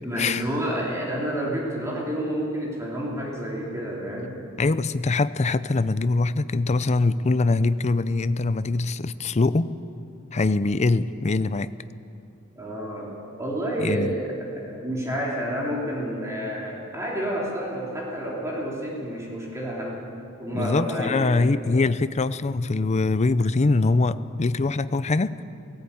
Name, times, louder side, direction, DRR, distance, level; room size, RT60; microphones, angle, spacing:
voice 1, 0.0-4.3 12.6-14.3 14.6-20.1 20.4-21.5, equal, 15° right, -4 dB, 3.2 m, -29 dB
voice 2, 4.6-9.7 10.3-11.7 13.8-14.1 20.5-25.4, left 3 dB, 35° left, 15 dB, 0.5 m, -23 dB
17.5 x 17.5 x 8.7 m, 2.6 s
head